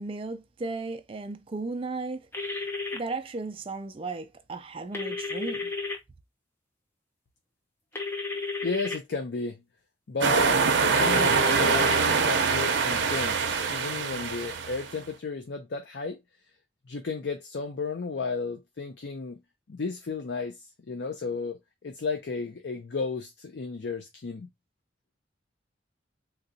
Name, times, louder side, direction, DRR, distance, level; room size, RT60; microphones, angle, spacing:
voice 1, 0.0-2.2 2.9-5.7, right 3 dB, 30° right, 0.4 m, -35 dB
sound 1, 2.3-3.0 4.9-6.0 7.9-9.0 11.0-12.0, left 3 dB, 15° left, 0.6 m, -32 dB
voice 2, 8.6-9.6 10.1-16.2 16.9-19.4 19.7-24.5, left 4 dB, 70° left, 0.5 m, -33 dB
sound 2, 10.2-14.9, right 5 dB, 90° right, 0.6 m, -24 dB
3.8 x 2.3 x 2.6 m
head